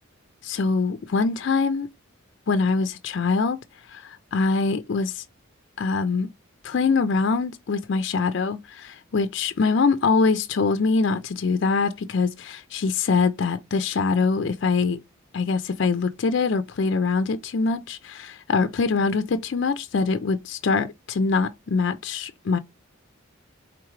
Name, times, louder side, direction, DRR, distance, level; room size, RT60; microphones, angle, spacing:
voice 1, 0.4-1.9 2.5-3.6 3.9-5.2 5.8-6.3 6.6-15.0 15.3-22.6, left 4 dB, 55° left, 0.4 m, -23 dB
4.7 x 3.5 x 3.1 m
head